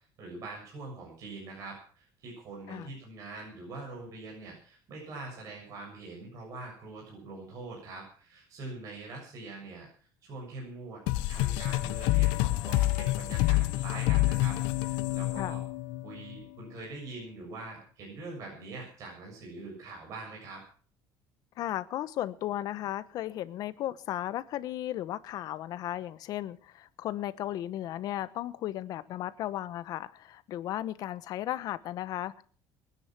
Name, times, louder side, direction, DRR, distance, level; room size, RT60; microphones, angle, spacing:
voice 1, 0.2-9.9 10.2-11.0 11.3-15.6 16.0-20.6, right 3 dB, 45° right, 7.2 m, -43 dB
sound 1, 11.1-16.4, left 18 dB, 85° left, 1.2 m, -28 dB
voice 2, 21.6-32.4, left 13 dB, 50° left, 1.1 m, -35 dB
21.5 x 10.0 x 6.0 m
cardioid pair, 155°, 8 cm